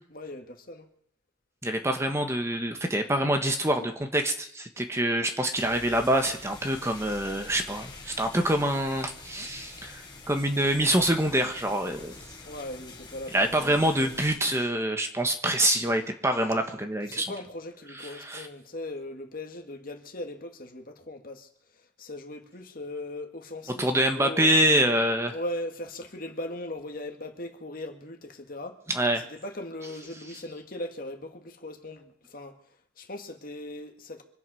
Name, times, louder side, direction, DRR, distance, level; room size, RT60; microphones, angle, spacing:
voice 1, 0.1-0.9 12.4-14.4 17.0-24.6 25.3-28.8 29.2-32.6 33.0-34.2, left 1 dB, 50° left, 1.9 m, -39 dB
voice 2, 1.6-10.0 10.3-12.1 13.3-17.3 18.0-18.5 23.8-25.3 28.9-29.2, right 1 dB, 15° right, 1.4 m, -25 dB
sound 1, 5.6-14.4, left 3 dB, 25° left, 3.6 m, -46 dB
25.0 x 8.4 x 6.3 m
head